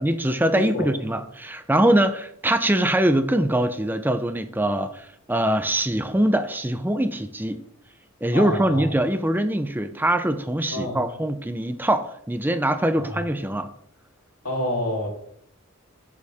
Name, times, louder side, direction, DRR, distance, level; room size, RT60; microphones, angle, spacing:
voice 1, 0.0-7.6 8.2-13.7, right 1 dB, 10° right, 9 dB, 0.6 m, -23 dB
voice 2, 0.5-0.9 8.3-8.9 10.7-11.0 12.9-13.2 14.4-15.1, left 1 dB, 90° left, -1 dB, 3.5 m, -28 dB
11.0 x 8.6 x 3.6 m, 0.69 s
head